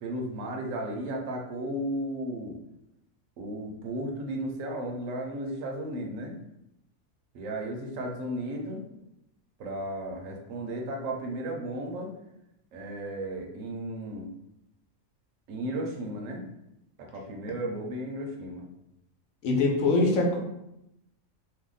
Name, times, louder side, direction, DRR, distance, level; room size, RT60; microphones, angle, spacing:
voice 1, 0.0-2.6 3.4-6.3 7.3-8.9 9.6-12.1 12.7-14.3 15.5-16.4 17.0-18.7, right 1 dB, 75° right, 1 dB, 0.9 m, -34 dB
voice 2, 19.4-20.4, left 2 dB, 80° left, 0 dB, 1.1 m, -23 dB
2.7 x 2.2 x 3.8 m, 0.85 s
omnidirectional pair, 1.4 m